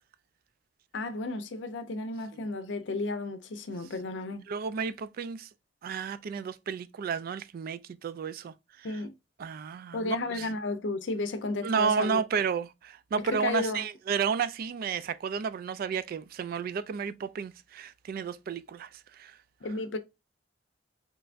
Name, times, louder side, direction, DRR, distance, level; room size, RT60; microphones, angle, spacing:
voice 1, 0.9-4.5 8.8-9.1 9.9-12.2 13.2-13.8 19.6-20.0, left 3 dB, 75° left, 0.6 m, -33 dB
voice 2, 4.5-5.5 5.8-8.9 9.4-10.5 11.6-18.9 19.2-19.4, right 6 dB, 50° right, 0.3 m, -32 dB
3.4 x 3.1 x 2.4 m
head